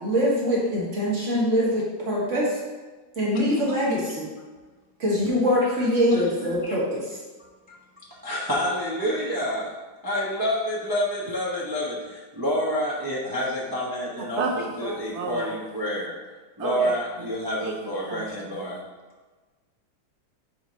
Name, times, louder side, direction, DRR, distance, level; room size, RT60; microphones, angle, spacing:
voice 1, 0.0-2.6 3.2-4.3 5.0-7.0, equal, 45° right, -5 dB, 1.7 m, -23 dB
voice 2, 7.7-9.7 10.0-16.1 16.6-18.8, equal, 25° right, -6 dB, 0.5 m, -28 dB
voice 3, 14.2-15.6 16.6-17.3 17.6-18.4, right 4 dB, 70° right, 1 dB, 0.6 m, -32 dB
5.0 x 3.7 x 5.2 m, 1.3 s
omnidirectional pair, 2.0 m